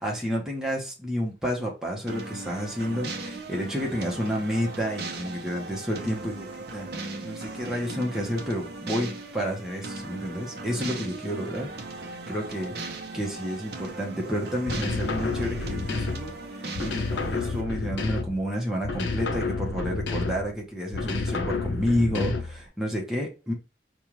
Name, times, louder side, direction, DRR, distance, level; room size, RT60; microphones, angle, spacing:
voice 1, 0.0-6.9 7.2-11.7 12.0-12.7 13.1-23.5, equal, 5° right, 1.0 m, -30 dB
sound 1, 2.1-17.6, right 2 dB, 65° right, 0.8 m, -38 dB
sound 2, 14.7-16.4 16.7-18.5 18.8-20.6 20.9-22.6, left 3 dB, 85° left, 0.6 m, -30 dB
5.4 x 2.5 x 3.1 m
head